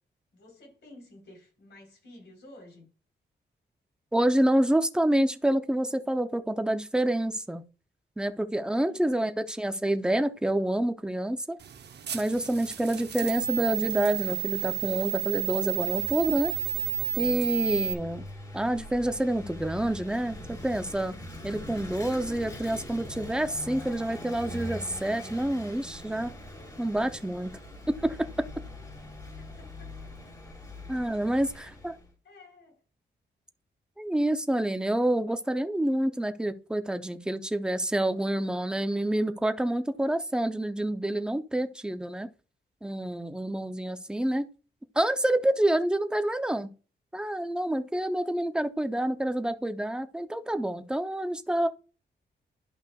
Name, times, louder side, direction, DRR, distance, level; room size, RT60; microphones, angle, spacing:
voice 1, 0.3-2.9 8.8-9.1 22.8-23.1 29.4-30.0 31.5-31.7 32.2-32.8 35.3-35.4, left 1 dB, 75° left, 3.8 m, -53 dB
voice 2, 4.1-7.6 8.2-11.6 12.1-16.5 17.2-18.2 18.5-20.4 20.6-21.1 21.4-26.3 26.8-27.5 27.9-28.2 30.9-31.9 34.0-42.3 42.8-44.5 45.0-46.7 47.1-51.7, right 1 dB, 5° right, 0.6 m, -27 dB
sound 1, 11.6-17.9, right 16 dB, 70° right, 0.7 m, -32 dB
Vehicle / Engine, 15.5-32.1, left 1 dB, 20° left, 3.2 m, -43 dB
11.0 x 5.5 x 2.3 m
wide cardioid pair, 120°, 18 cm